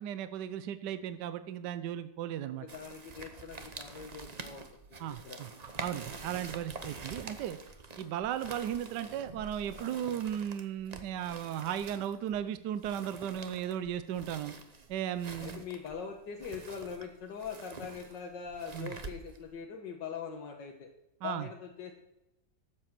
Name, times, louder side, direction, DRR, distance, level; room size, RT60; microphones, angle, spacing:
voice 1, 0.0-2.6 5.0-5.5 5.8-7.6 8.0-14.5 14.9-15.6 18.7-18.9 21.2-21.5, right 10 dB, 75° right, 12 dB, 1.3 m, -36 dB
voice 2, 2.6-5.4 15.4-20.9 21.2-21.9, left 6 dB, 90° left, 1 dB, 1.8 m, -42 dB
sound 1, 2.7-19.6, right 4 dB, 35° right, 0.7 m, -47 dB
13.0 x 7.7 x 6.0 m, 0.92 s
omnidirectional pair, 1.9 m